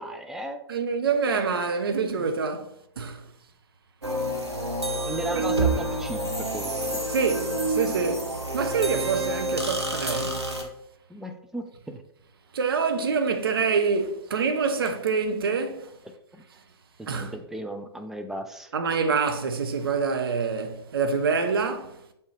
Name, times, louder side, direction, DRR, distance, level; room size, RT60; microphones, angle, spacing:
voice 1, 0.0-0.6 1.3-1.5 5.0-6.7 11.1-12.0 16.3-16.4 17.0-18.7, right 1 dB, 5° right, 0.4 m, -36 dB
voice 2, 0.7-3.2 7.1-10.4 12.5-15.9 17.1-17.3 18.7-22.0, right 5 dB, 60° right, 0.8 m, -26 dB
sound 1, 4.0-10.6, right 1 dB, 90° right, 1.1 m, -28 dB
7.0 x 4.1 x 3.3 m
figure-of-eight pair, 110°, 14 cm